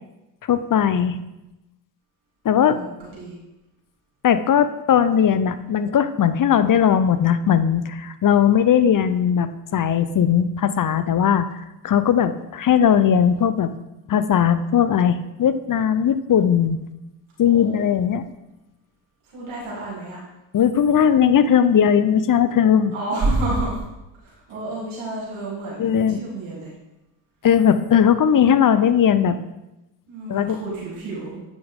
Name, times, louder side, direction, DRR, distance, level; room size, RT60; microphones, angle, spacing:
voice 1, 0.5-1.2 2.4-2.8 4.2-11.5 11.8-13.7 14.1-16.8 17.4-18.2 20.5-22.9 25.8-26.2 27.4-29.4 30.3-30.6, left 8 dB, 40° left, 12 dB, 0.7 m, -18 dB
voice 2, 2.6-3.4 17.5-17.8 19.3-20.2 22.9-23.8 24.2-26.7 30.1-31.4, right 2 dB, 75° right, -7 dB, 3.2 m, -29 dB
8.6 x 6.0 x 3.6 m, 0.95 s
hypercardioid pair, 50°, 50 cm